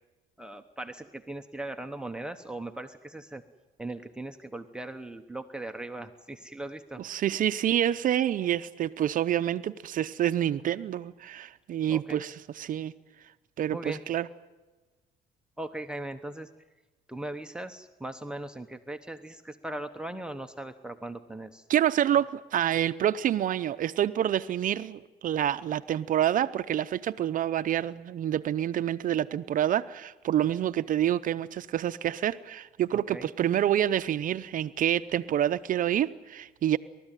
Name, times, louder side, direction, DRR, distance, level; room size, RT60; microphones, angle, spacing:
voice 1, 0.4-3.4 3.8-7.0 11.9-12.2 13.7-14.0 15.6-16.5 17.1-21.6 32.9-33.3, right 1 dB, 5° right, 5 dB, 1.0 m, -39 dB
voice 2, 7.0-12.9 13.6-14.3 21.7-36.8, right 11 dB, 55° right, 12 dB, 0.7 m, -27 dB
29.5 x 13.5 x 9.1 m, 1.2 s
cardioid pair, 110°, 17 cm